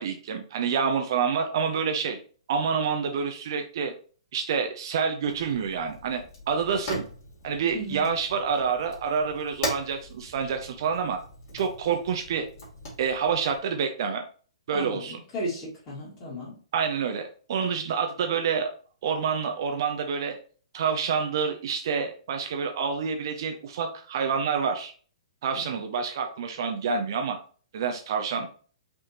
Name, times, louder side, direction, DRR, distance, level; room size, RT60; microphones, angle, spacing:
voice 1, 0.0-2.2 2.5-3.9 4.3-6.2 6.5-7.0 7.4-11.2 11.5-12.5 13.0-14.2 14.7-15.2 16.7-18.7 19.0-20.4 20.7-24.9 25.4-27.4 27.7-28.5, right 6 dB, 45° right, 5 dB, 0.6 m, -27 dB
Fire, 5.2-13.6, left 1 dB, 40° left, 2.2 m, -40 dB
voice 2, 7.7-8.1 14.7-16.5 25.6-25.7, equal, 25° left, -8 dB, 2.3 m, -35 dB
5.0 x 3.5 x 2.9 m, 0.41 s
figure-of-eight pair, 120°, 3 cm